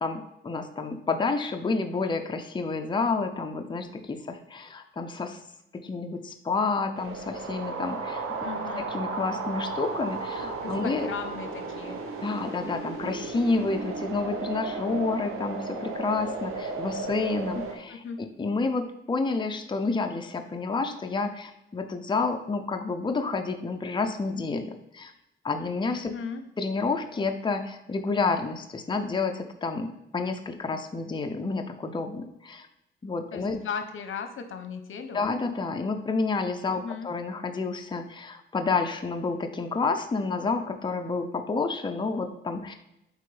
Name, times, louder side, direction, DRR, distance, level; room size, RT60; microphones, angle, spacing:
voice 1, 0.0-5.4 5.7-11.1 12.2-25.1 25.4-26.1 26.6-32.7 33.0-33.6 35.1-42.7, left 4 dB, 20° left, 5 dB, 0.6 m, -29 dB
sound 1, 6.9-17.8, right 4 dB, 80° right, 1.1 m, -34 dB
voice 2, 8.4-8.9 10.6-12.0 17.9-18.2 26.1-26.4 33.3-35.3 36.8-37.1, left 6 dB, 75° left, 7 dB, 0.8 m, -37 dB
8.2 x 4.3 x 3.4 m, 0.88 s
cardioid pair, 100°, 21 cm